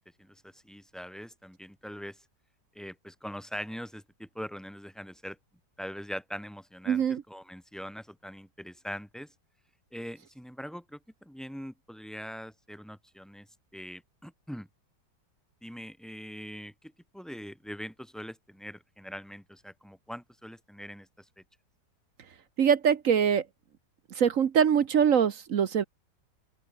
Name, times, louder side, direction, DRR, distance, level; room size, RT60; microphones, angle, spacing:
voice 1, 0.2-2.2 2.7-5.4 5.8-9.3 9.9-13.5 13.7-14.7 15.6-21.4, equal, ahead, 7.9 m, -42 dB
voice 2, 6.9-7.2 22.6-23.4 24.1-25.8, right 8 dB, 55° right, 1.2 m, -23 dB
open air
omnidirectional pair, 1.9 m